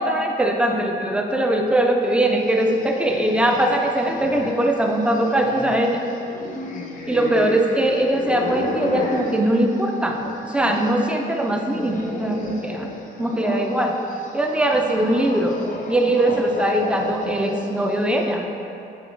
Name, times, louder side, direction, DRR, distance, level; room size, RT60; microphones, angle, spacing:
voice 1, 0.0-6.0 7.1-10.2 10.4-12.9 13.2-14.0 14.3-15.6 15.9-18.5, right 1 dB, 5° right, 2 dB, 0.4 m, -21 dB
sound 1, 2.3-11.0 11.3-18.1, left 2 dB, 40° left, 0.5 m, -32 dB
6.3 x 2.8 x 2.5 m, 2.8 s
cardioid pair, 90°, 20 cm